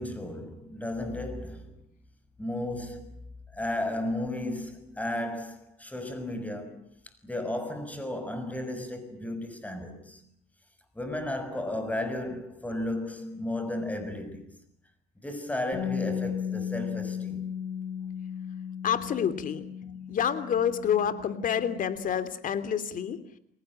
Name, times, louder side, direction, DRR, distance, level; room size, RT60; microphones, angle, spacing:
voice 1, 0.0-1.7 2.4-3.1 3.5-6.8 7.2-10.2 10.9-14.5 15.2-17.5, left 1 dB, 10° left, 6.3 m, -34 dB
Bass guitar, 15.7-22.0, left 8 dB, 30° left, 5.3 m, -35 dB
voice 2, 18.8-23.2, left 8 dB, 50° left, 3.0 m, -28 dB
29.5 x 19.5 x 8.9 m
cardioid pair, 110°, 17 cm